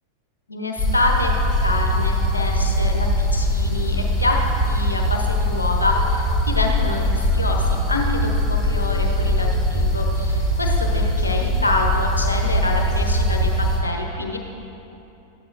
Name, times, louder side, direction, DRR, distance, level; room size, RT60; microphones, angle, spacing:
voice 1, 0.5-1.3 1.6-4.4 4.7-14.4, left 2 dB, 80° left, 1 dB, 1.2 m, -26 dB
sound 1, 0.8-13.8, equal, 5° left, 2.5 m, -21 dB
13.5 x 9.9 x 2.7 m, 2.9 s
figure-of-eight pair, 90°, 0 cm